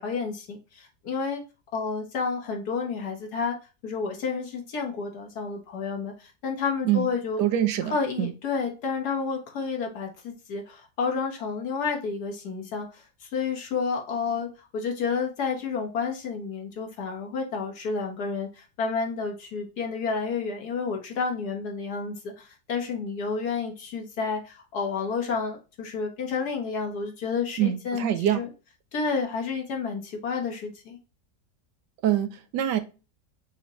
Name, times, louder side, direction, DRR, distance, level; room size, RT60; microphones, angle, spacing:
voice 1, 0.0-1.4 1.7-3.6 3.8-7.4 7.9-28.5 28.9-31.0, left 5 dB, 65° left, 1.7 m, -30 dB
voice 2, 7.4-7.9 8.2-8.3 27.6-28.4 32.0-32.8, right 11 dB, 75° right, 1.2 m, -24 dB
5.6 x 2.9 x 2.9 m
omnidirectional pair, 1.9 m